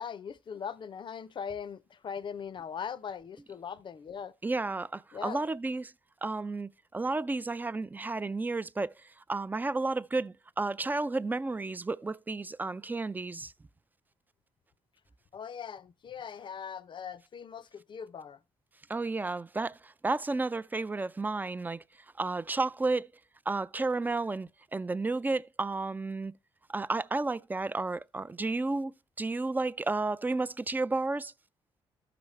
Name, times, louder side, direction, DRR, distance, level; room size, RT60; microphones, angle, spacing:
voice 1, 0.0-4.3 5.1-5.4 15.3-18.4, left 7 dB, 50° left, 0.6 m, -40 dB
voice 2, 4.4-5.9 6.2-8.9 9.3-13.5 18.9-21.8 22.2-23.1 23.5-26.3 26.7-31.3, right 3 dB, 15° right, 0.4 m, -32 dB
13.0 x 5.9 x 3.1 m
cardioid pair, 75°, 11 cm